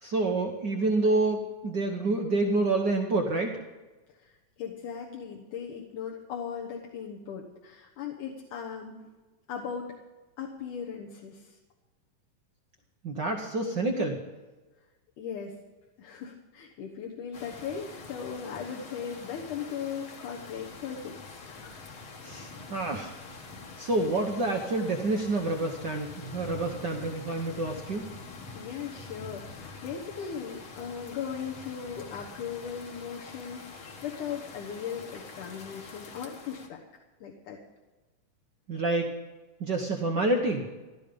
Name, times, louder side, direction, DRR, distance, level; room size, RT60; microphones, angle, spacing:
voice 1, 0.0-3.6 13.0-14.2 22.2-23.4 23.8-28.0 38.7-39.1 39.6-40.7, right 2 dB, 80° right, 2 dB, 0.9 m, -28 dB
voice 2, 4.6-9.0 9.5-9.9 10.4-11.6 15.2-15.5 16.0-21.8 22.7-22.8 28.5-36.8 37.2-37.6, left 7 dB, 75° left, -2 dB, 2.8 m, -38 dB
sound 1, 17.3-36.7, left 4 dB, 50° left, 2.0 m, -45 dB
15.5 x 12.5 x 5.2 m, 1.2 s
omnidirectional pair, 3.7 m